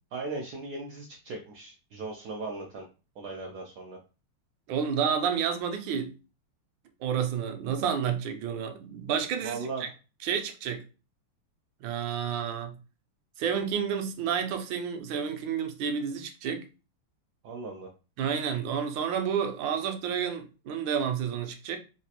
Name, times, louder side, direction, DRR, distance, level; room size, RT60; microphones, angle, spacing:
voice 1, 0.1-2.8 3.2-4.0 9.4-9.9 17.4-17.9, right 3 dB, 90° right, 0.8 m, -38 dB
voice 2, 4.7-6.1 7.0-9.9 10.2-10.8 11.8-12.7 13.4-16.7 18.2-21.8, right 7 dB, 70° right, 1.2 m, -30 dB
4.0 x 2.4 x 2.8 m
omnidirectional pair, 2.4 m